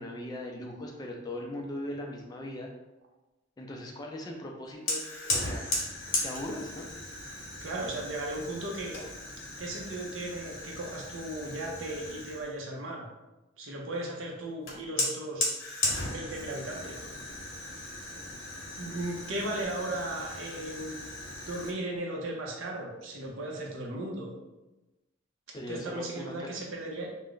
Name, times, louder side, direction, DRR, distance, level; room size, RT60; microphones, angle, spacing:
voice 1, 0.0-2.7 3.6-5.6 6.2-6.9 25.5-26.6, left 1 dB, 20° left, 1 dB, 0.3 m, -39 dB
Fire, 4.9-12.5 14.7-21.7, left 2 dB, 80° left, 0.8 m, -36 dB
voice 2, 7.6-9.0 9.6-13.1 13.6-15.5 16.0-17.0 17.4-17.9 18.8-21.1 21.4-24.3 25.7-27.1, right 1 dB, 85° right, -1 dB, 0.6 m, -36 dB
2.4 x 2.1 x 3.7 m, 1.0 s
head